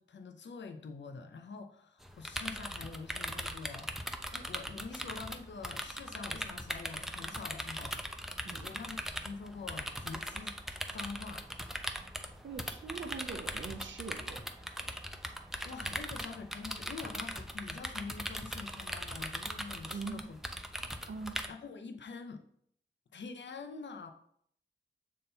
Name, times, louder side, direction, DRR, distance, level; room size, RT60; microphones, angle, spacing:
voice 1, 0.0-3.9 4.3-10.6 10.9-11.5 15.4-20.4 20.7-21.1 21.5-22.4 23.1-24.1, left 4 dB, 70° left, 5 dB, 0.7 m, -46 dB
sound 1, 2.0-21.5, equal, ahead, 0.5 m, -40 dB
voice 2, 12.1-14.4 19.9-20.2 21.1-21.4, right 4 dB, 75° right, 4 dB, 0.7 m, -42 dB
6.5 x 3.7 x 4.3 m, 0.65 s
wide cardioid pair, 90°, 19 cm